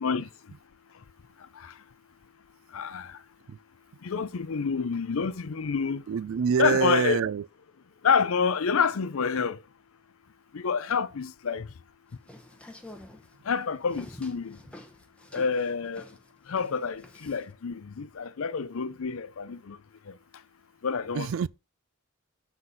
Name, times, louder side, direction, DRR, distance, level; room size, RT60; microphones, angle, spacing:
voice 1, 2.7-3.2 4.0-6.0 6.6-7.2 8.0-9.6 10.5-11.7 13.4-14.6 15.3-16.0 16.5-19.8 20.1-20.2 20.8-21.3, left 6 dB, 70° left, 0.5 m, -28 dB
voice 2, 6.1-7.5 21.1-21.5, right 7 dB, 65° right, 0.3 m, -26 dB
sound 1, 12.1-17.5, left 1 dB, 5° left, 0.8 m, -48 dB
7.9 x 4.0 x 5.5 m
head